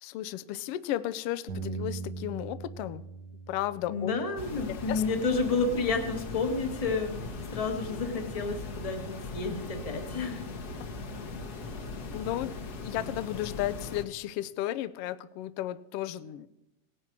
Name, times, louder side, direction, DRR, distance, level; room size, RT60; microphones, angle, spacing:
voice 1, 0.0-3.0 3.5-4.1 4.7-5.0 12.1-16.5, left 13 dB, 80° left, 15 dB, 1.3 m, -34 dB
Bass guitar, 1.5-7.7, right 4 dB, 75° right, 1.0 m, -43 dB
voice 2, 3.9-7.1 7.5-10.4, left 4 dB, 25° left, 5 dB, 0.8 m, -30 dB
sound 1, 4.4-14.1, left 3 dB, 55° left, 1.1 m, -39 dB
18.0 x 10.0 x 4.7 m, 0.92 s
omnidirectional pair, 3.4 m